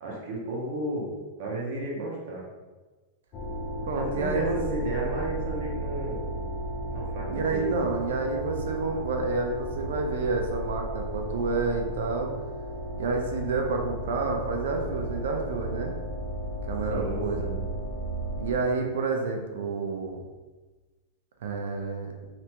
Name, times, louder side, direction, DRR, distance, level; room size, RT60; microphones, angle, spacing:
voice 1, 0.0-2.4 3.9-6.2 6.9-7.8 16.9-17.6, right 1 dB, 45° right, -3 dB, 0.8 m, -33 dB
sound 1, 3.3-18.5, right 1 dB, 25° left, 0.4 m, -34 dB
voice 2, 3.8-4.6 7.3-12.3 13.0-15.9 16.7-17.5 18.4-20.2 21.4-22.1, right 3 dB, 85° right, 3 dB, 0.6 m, -29 dB
3.3 x 2.5 x 2.9 m, 1.2 s
supercardioid pair, 175°, 0 cm